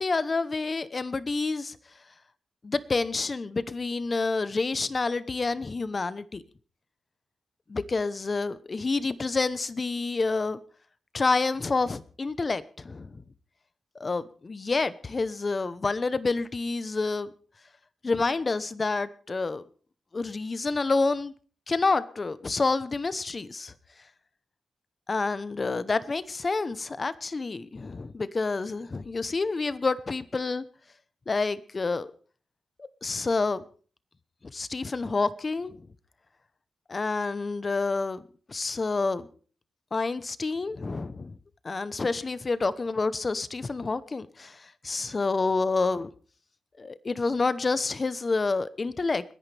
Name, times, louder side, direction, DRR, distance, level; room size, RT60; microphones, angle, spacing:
voice 1, 0.0-1.8 2.6-6.4 7.7-10.6 11.1-13.2 14.0-17.3 18.0-19.6 20.1-21.3 21.7-23.7 25.1-30.6 31.3-32.1 32.8-33.6 34.4-35.8 36.9-38.2 38.5-39.3 39.9-41.3 41.6-46.1 46.8-49.2, left 3 dB, 30° left, 0.9 m, -28 dB
30.0 x 10.5 x 3.5 m
wide cardioid pair, 150°, 0 cm